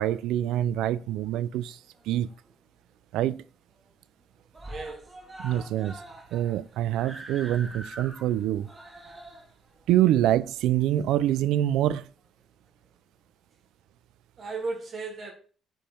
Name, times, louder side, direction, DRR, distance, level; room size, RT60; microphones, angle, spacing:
voice 1, 0.0-1.8 2.1-2.3 3.1-3.4 5.4-6.0 6.3-8.7 9.9-12.1, right 12 dB, 85° right, 0.5 m, -25 dB
Screaming, 1.6-2.6 2.9-3.0 3.3-3.4 3.7-4.2 4.5-11.3 12.2-12.3, right 1 dB, 15° right, 2.3 m, -45 dB
voice 2, 4.7-5.4 14.4-15.3, right 3 dB, 40° right, 2.6 m, -36 dB
9.1 x 5.3 x 4.5 m
cardioid pair, 160°, 0 cm